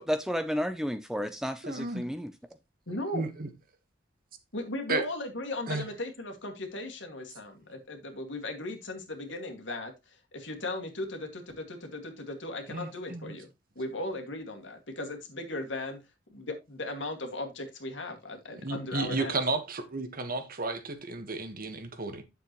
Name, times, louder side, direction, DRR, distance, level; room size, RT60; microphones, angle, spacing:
voice 1, 0.0-2.3, equal, 5° right, 0.5 m, -32 dB
voice 2, 1.6-2.1 2.9-3.5 4.9-5.0 5.7-5.8 12.7-13.3 18.5-22.2, right 3 dB, 50° right, 1.4 m, -33 dB
voice 3, 2.9-3.3 4.5-13.5 13.8-16.0 16.3-19.4, left 2 dB, 75° left, 2.0 m, -37 dB
9.3 x 7.1 x 3.0 m
head